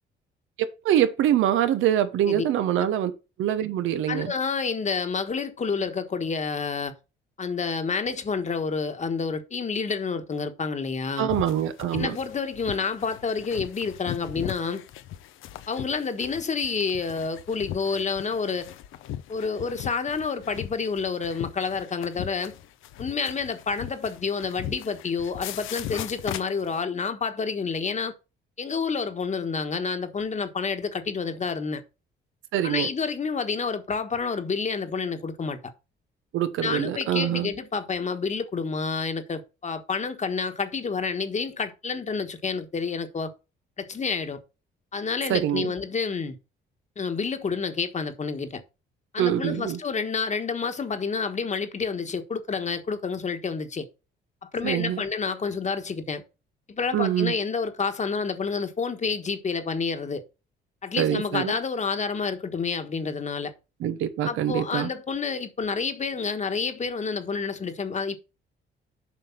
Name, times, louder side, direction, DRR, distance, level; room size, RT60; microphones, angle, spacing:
voice 1, 0.6-3.1 3.4-4.3 11.2-12.2 32.5-32.9 36.3-37.5 45.3-45.7 49.2-49.8 54.6-55.0 56.9-57.3 61.0-61.6 63.8-64.9, right 11 dB, 85° right, 1.1 m, -24 dB
voice 2, 4.1-6.9 7.4-11.3 11.9-14.8 15.7-18.7 19.3-22.5 23.0-28.1 28.6-31.8 32.6-35.6 36.6-43.3 43.8-44.4 44.9-46.4 47.0-48.6 49.1-53.9 54.4-56.2 56.7-60.2 60.8-63.5 64.2-68.2, left 5 dB, 35° left, 1.4 m, -29 dB
sound 1, 11.3-26.8, left 12 dB, 90° left, 0.7 m, -39 dB
7.5 x 5.2 x 5.8 m
cardioid pair, 90°, 20 cm